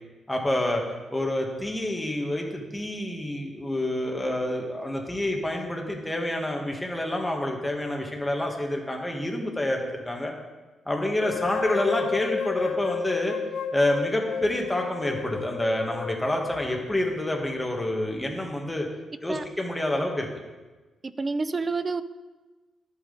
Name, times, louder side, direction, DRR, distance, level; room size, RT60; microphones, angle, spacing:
voice 1, 0.3-0.8 1.1-10.3 10.8-13.3 13.7-18.9 19.2-20.3, left 1 dB, 10° left, 1 dB, 1.3 m, -28 dB
sound 1, 11.2-17.2, left 6 dB, 90° left, 0.7 m, -33 dB
voice 2, 21.0-22.0, right 3 dB, 25° right, 13 dB, 0.4 m, -28 dB
11.0 x 8.5 x 3.8 m, 1.2 s
wide cardioid pair, 165°, 0 cm